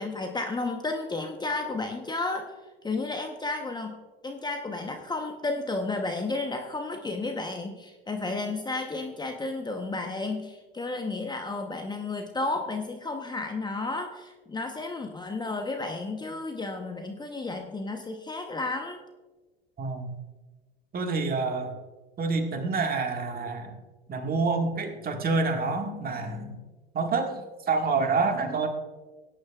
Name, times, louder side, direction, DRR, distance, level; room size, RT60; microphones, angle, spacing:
voice 1, 0.0-2.5 2.8-4.0 4.2-19.0, left 3 dB, 15° left, 4 dB, 1.0 m, -32 dB
voice 2, 19.8-20.2 20.9-21.8 22.2-23.7 24.1-26.6 26.9-27.4 27.7-28.7, right 4 dB, 30° right, 4 dB, 1.8 m, -27 dB
17.5 x 9.8 x 2.4 m, 1.3 s
hypercardioid pair, 80°, 30 cm